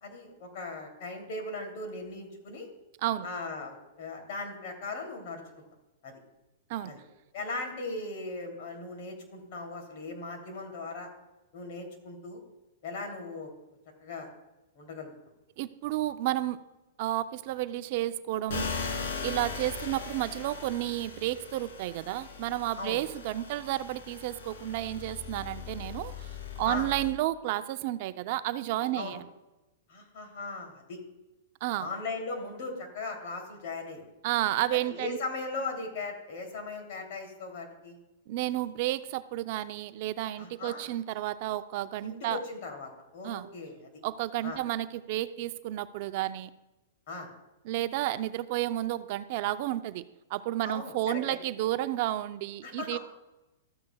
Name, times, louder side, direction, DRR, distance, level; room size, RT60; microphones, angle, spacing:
voice 1, 0.0-2.7 3.2-5.6 6.0-6.1 6.8-7.0 7.3-11.1 11.5-12.4 12.8-13.5 14.0-14.3 14.8-15.1 22.8-23.0 26.7-26.9 28.9-29.2 29.9-31.0 31.8-34.0 34.7-38.0 40.4-40.9 42.0-43.9 44.4-44.6 47.1-47.3 50.6-51.2 52.6-53.0, left 3 dB, 55° left, 2 dB, 2.8 m, -38 dB
voice 2, 15.6-16.6 17.0-18.7 19.2-26.3 26.6-29.2 31.6-31.9 34.2-35.2 38.3-42.4 43.2-43.5 44.0-46.5 47.6-53.0, right 14 dB, 50° right, 12 dB, 0.4 m, -31 dB
sound 1, 18.5-27.1, left 5 dB, 70° left, 2.5 m, -39 dB
13.5 x 8.5 x 2.3 m, 1.0 s
hypercardioid pair, 135°, 0 cm